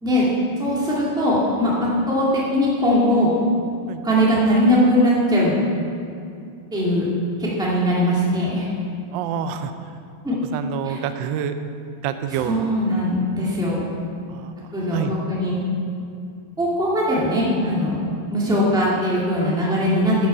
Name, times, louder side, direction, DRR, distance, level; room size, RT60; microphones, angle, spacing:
voice 1, 0.6-3.3 4.0-5.5 6.7-7.1 7.4-8.7 10.2-10.4 10.8-11.0 12.4-13.9 14.7-15.6 16.6-20.1, equal, ahead, -6 dB, 1.6 m, -20 dB
voice 2, 9.1-9.9 10.5-11.5 12.0-12.8 14.3-14.5 14.9-15.2, right 8 dB, 75° right, 9 dB, 1.1 m, -27 dB
10.0 x 6.2 x 5.5 m, 2.4 s
omnidirectional pair, 2.4 m